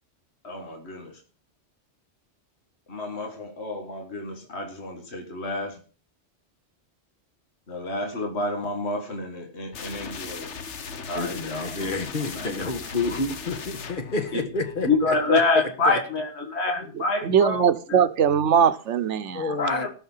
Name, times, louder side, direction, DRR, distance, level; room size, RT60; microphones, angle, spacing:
voice 1, 0.4-1.2 2.9-5.8 7.7-10.5 11.1-12.7 14.3-14.4 14.8-18.0 19.6-19.9, left 3 dB, 70° left, 2.0 m, -28 dB
sound 1, 9.7-15.4, left 5 dB, 85° left, 1.4 m, -38 dB
voice 2, 11.2-15.2 19.3-19.9, left 3 dB, 50° left, 1.7 m, -29 dB
voice 3, 17.2-19.6, right 8 dB, 85° right, 1.2 m, -21 dB
18.0 x 6.4 x 5.6 m
omnidirectional pair, 1.2 m